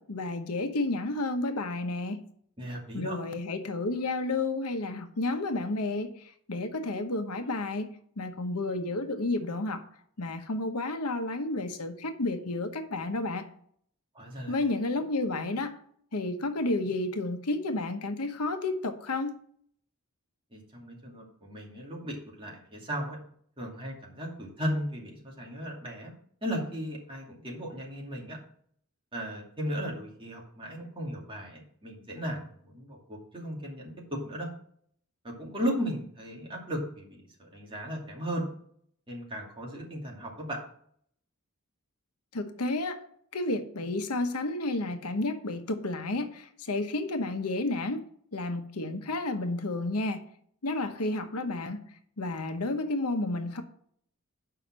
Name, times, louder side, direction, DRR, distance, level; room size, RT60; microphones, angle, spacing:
voice 1, 0.0-2.2 2.9-7.9 8.2-9.8 10.2-13.5 14.5-15.8 16.1-19.3 42.3-43.0 43.3-48.0 48.3-50.2 50.6-51.8 52.2-53.6, left 2 dB, 85° left, 1.0 m, -31 dB
voice 2, 2.6-3.2 14.1-14.5 20.5-23.2 23.6-26.1 26.4-28.4 29.1-34.5 35.2-38.4 39.1-40.6, equal, 25° right, 2.6 m, -36 dB
7.0 x 5.7 x 7.4 m
head